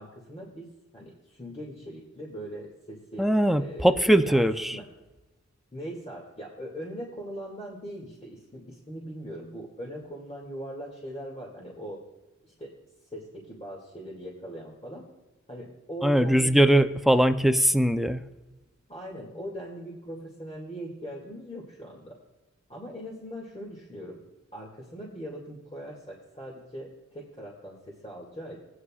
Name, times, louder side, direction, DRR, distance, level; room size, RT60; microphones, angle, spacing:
voice 1, 0.0-4.5 4.7-4.8 5.7-12.0 12.4-12.7 13.0-15.0 15.5-16.6 18.9-22.2 22.7-24.2 24.5-28.6, equal, 25° left, -4 dB, 2.3 m, -40 dB
voice 2, 3.2-4.8 16.0-18.2, right 1 dB, ahead, 10 dB, 0.6 m, -21 dB
16.0 x 9.6 x 2.4 m, 1.1 s
cardioid pair, 55°, 29 cm